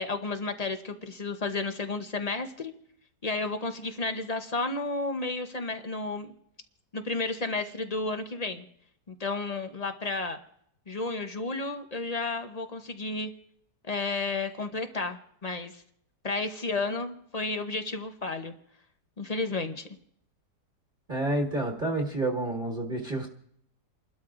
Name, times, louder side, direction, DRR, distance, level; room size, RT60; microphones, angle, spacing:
voice 1, 0.0-2.7 3.2-6.3 6.9-8.7 9.1-10.4 10.9-13.3 13.8-15.7 16.2-18.5 19.2-19.9, left 3 dB, 35° left, 7 dB, 0.6 m, -32 dB
voice 2, 21.1-23.3, right 2 dB, 35° right, -1 dB, 1.5 m, -29 dB
29.5 x 12.5 x 2.5 m, 0.69 s
omnidirectional pair, 1.8 m